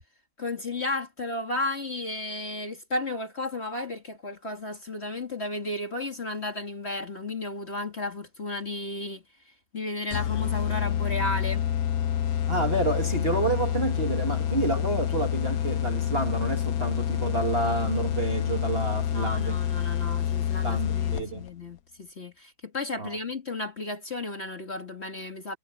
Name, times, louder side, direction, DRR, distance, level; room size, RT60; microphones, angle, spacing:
voice 1, 0.4-9.2 9.7-11.6 19.1-25.6, left 2 dB, 30° left, 2.3 m, -33 dB
sound 1, 10.1-21.5, left 10 dB, 60° left, 0.9 m, -28 dB
voice 2, 12.5-19.6 20.6-21.4 23.0-23.2, right 3 dB, 30° right, 2.1 m, -29 dB
omnidirectional pair, 2.4 m